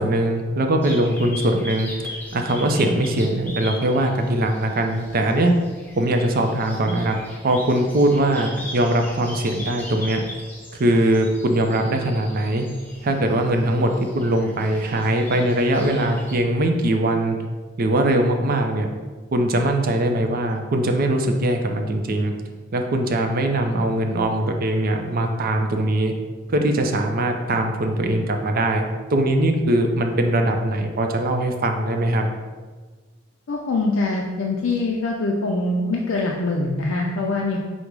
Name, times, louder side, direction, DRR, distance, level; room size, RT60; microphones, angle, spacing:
voice 1, 0.0-1.9 2.3-5.5 6.0-7.2 7.4-10.2 10.8-12.7 13.0-17.4 17.8-18.9 19.3-22.3 22.7-26.1 26.5-32.3, right 1 dB, 50° right, 4 dB, 0.5 m, -21 dB
sound 1, 0.8-16.4, left 1 dB, 10° left, 0.6 m, -40 dB
voice 2, 33.5-37.6, left 2 dB, 80° left, -1 dB, 0.4 m, -23 dB
5.1 x 2.1 x 4.6 m, 1.4 s
head